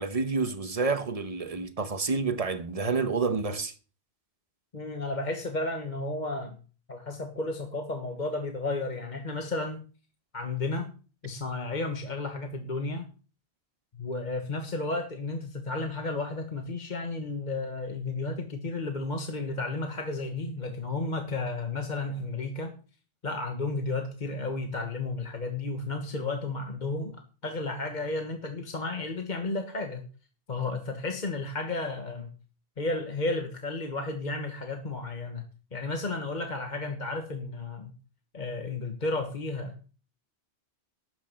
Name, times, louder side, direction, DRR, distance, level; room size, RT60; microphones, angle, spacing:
voice 1, 0.0-3.7, right 4 dB, 35° right, 1.2 m, -29 dB
voice 2, 4.7-6.6 6.9-9.8 10.3-10.9 11.2-13.1 13.9-22.7 23.2-30.0 30.5-32.3 32.8-35.4 35.7-37.9 38.3-39.7, left 3 dB, 40° left, 1.5 m, -33 dB
12.5 x 6.5 x 7.7 m
omnidirectional pair, 1.2 m